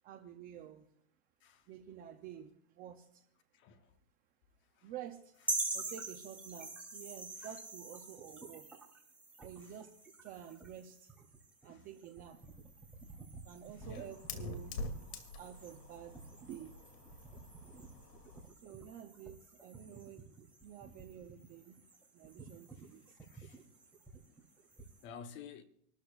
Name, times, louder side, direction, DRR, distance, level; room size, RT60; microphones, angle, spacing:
voice 1, 0.0-0.9 1.7-3.3 4.8-5.4 5.7-8.7 9.4-9.9 10.2-11.1 11.6-12.4 13.4-14.8 15.4-16.7 18.5-25.0, right 10 dB, 20° right, 0.5 m, -51 dB
voice 2, 3.5-4.0 4.8-4.9 7.4-7.5 9.6-9.7 11.6-11.9 13.8-14.1 22.8-23.7 24.2-24.4 25.0-25.6, left 6 dB, 25° left, 0.8 m, -53 dB
sound 1, 5.4-25.0, right 2 dB, 5° right, 2.9 m, -47 dB
Fire, 12.3-18.5, left 2 dB, 70° left, 2.6 m, -47 dB
27.5 x 13.0 x 2.4 m
supercardioid pair, 145°, 49 cm